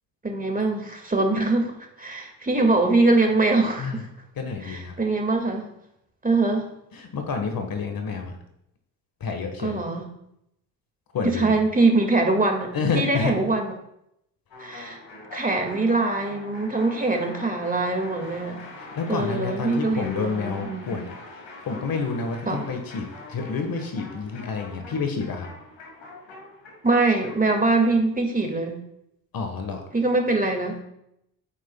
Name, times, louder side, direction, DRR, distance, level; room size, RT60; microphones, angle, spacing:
voice 1, 0.2-1.7 2.0-4.1 4.6-5.7 6.2-6.7 9.6-10.1 11.2-13.7 14.6-15.0 15.3-18.6 19.1-21.0 22.5-22.6 26.8-28.8 29.9-30.8, right 3 dB, 15° right, 3 dB, 1.9 m, -23 dB
voice 2, 4.4-4.9 6.9-8.4 9.2-9.7 11.1-11.5 12.7-13.3 18.9-21.0 21.6-25.5 29.3-29.8, left 5 dB, 45° left, 5 dB, 1.5 m, -29 dB
sound 1, 14.5-28.0, left 3 dB, 60° left, 2.4 m, -43 dB
10.0 x 8.1 x 2.3 m, 0.78 s
hypercardioid pair, 60°, 49 cm